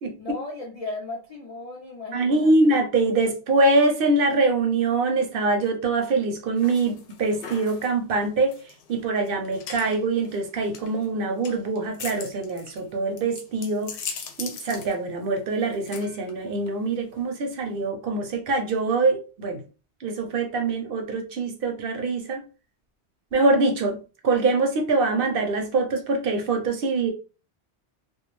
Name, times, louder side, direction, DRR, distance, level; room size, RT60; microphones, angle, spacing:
voice 1, 0.2-2.8, left 2 dB, 50° left, -1 dB, 0.4 m, -36 dB
voice 2, 2.1-8.6 8.9-14.0 14.4-19.6 20.0-22.4 23.3-27.1, right 3 dB, 60° right, 4 dB, 0.6 m, -24 dB
sound 1, 6.6-17.9, left 6 dB, 80° left, 0.9 m, -41 dB
2.2 x 2.2 x 3.0 m, 0.34 s
omnidirectional pair, 1.2 m